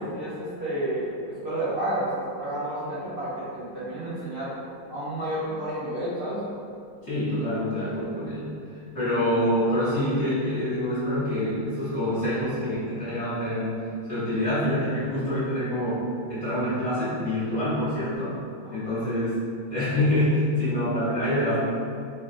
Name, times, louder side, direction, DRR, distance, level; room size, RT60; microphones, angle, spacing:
voice 1, 0.1-4.5 4.9-6.4 18.6-19.1, right 1 dB, 40° right, -11 dB, 1.0 m, -31 dB
voice 2, 7.0-8.5 8.9-13.7 14.1-18.3 18.7-19.4 19.7-21.6, left 1 dB, 40° left, -15 dB, 1.4 m, -26 dB
3.9 x 2.4 x 2.6 m, 2.4 s
omnidirectional pair, 2.2 m